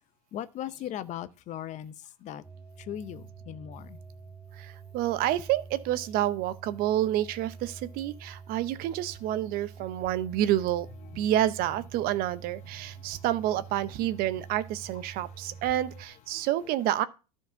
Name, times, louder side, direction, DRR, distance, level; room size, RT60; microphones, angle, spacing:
voice 1, 0.3-2.4 2.8-4.0 11.0-11.3 12.8-13.6 14.3-14.4 15.1-15.6 16.3-16.5, left 11 dB, 40° left, 0.7 m, -40 dB
sound 1, 2.4-16.1, right 6 dB, 5° left, 1.9 m, -47 dB
voice 2, 4.5-10.9 11.2-17.1, right 13 dB, 50° right, 0.7 m, -29 dB
11.5 x 4.6 x 5.7 m
supercardioid pair, 115°, 19 cm